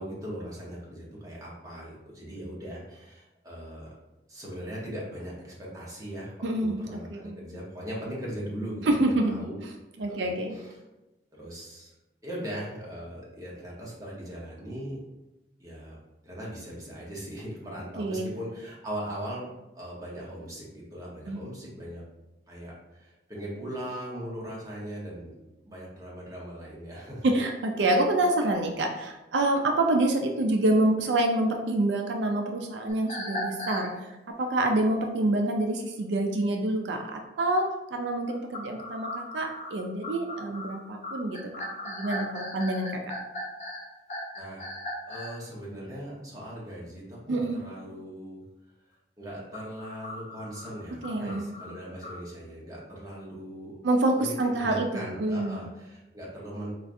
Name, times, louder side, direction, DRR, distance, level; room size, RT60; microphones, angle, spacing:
voice 1, 0.0-3.9 4.3-9.6 10.2-10.8 11.3-11.9 12.2-15.0 15.6-16.0 16.2-19.4 19.7-22.0 22.5-25.3 25.6-27.3 44.3-44.7 45.1-48.4 49.2-53.8 54.1-54.3 54.6-56.7, equal, 20° right, -5 dB, 0.9 m, -39 dB
voice 2, 6.4-7.4 8.9-9.4 9.6-9.7 10.0-10.6 18.0-18.3 21.3-21.4 27.2-33.9 34.4-41.5 41.8-42.9 47.3-47.6 51.0-51.5 53.8-55.6, right 2 dB, 85° right, 3 dB, 0.4 m, -27 dB
sound 1, 32.9-33.9 38.3-45.4 49.3-52.2, left 1 dB, 40° left, 0.9 m, -37 dB
4.5 x 2.4 x 2.5 m, 0.99 s
head